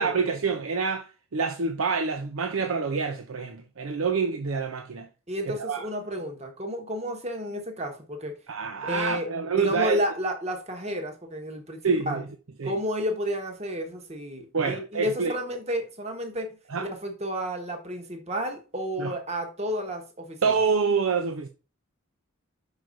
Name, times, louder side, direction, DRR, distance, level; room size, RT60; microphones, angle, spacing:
voice 1, 0.0-5.1 5.5-5.9 8.5-10.0 11.8-12.3 12.6-12.8 14.5-15.3 16.7-16.9 19.0-19.1 20.4-21.5, right 5 dB, 80° right, 0.6 m, -27 dB
voice 2, 5.3-8.3 8.8-9.3 9.6-11.8 12.1-12.2 12.6-16.6 16.8-20.5, equal, 30° right, 1.2 m, -31 dB
6.2 x 5.0 x 3.9 m
head